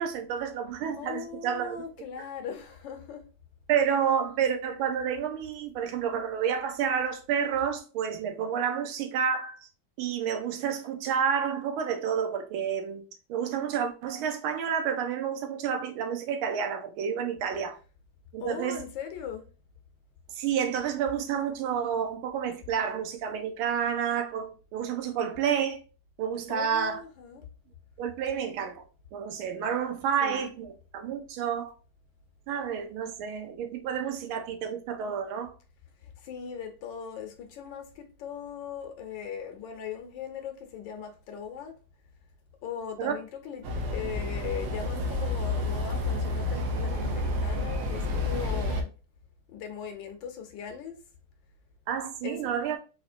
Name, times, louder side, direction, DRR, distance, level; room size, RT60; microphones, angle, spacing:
voice 1, 0.0-1.8 3.7-9.6 10.0-13.0 13.3-17.8 18.3-18.8 20.4-25.8 26.2-27.0 28.0-28.8 29.1-31.7 32.5-35.5 43.0-43.2 51.9-52.8, right 7 dB, 85° right, 1.5 m, -30 dB
voice 2, 0.9-3.3 18.4-19.4 26.5-27.4 30.2-30.5 36.0-41.8 42.6-48.9 49.5-51.0 52.2-52.6, left 7 dB, 75° left, 1.3 m, -39 dB
sound 1, 43.6-48.8, left 2 dB, 65° right, 1.0 m, -30 dB
4.3 x 2.8 x 2.4 m
omnidirectional pair, 2.3 m